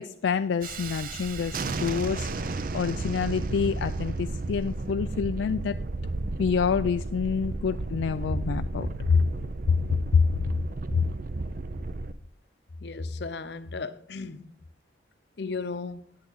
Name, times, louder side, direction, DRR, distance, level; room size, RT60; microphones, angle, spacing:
voice 1, 0.0-5.8 6.4-9.2 9.7-9.8 10.1-10.3 10.9-11.0, left 6 dB, 90° left, 0.3 m, -27 dB
Thunderstorm, 0.6-12.1, right 3 dB, 50° right, 0.6 m, -33 dB
voice 2, 12.8-14.5 15.4-16.2, left 4 dB, 65° left, 0.7 m, -35 dB
10.0 x 8.5 x 3.9 m
head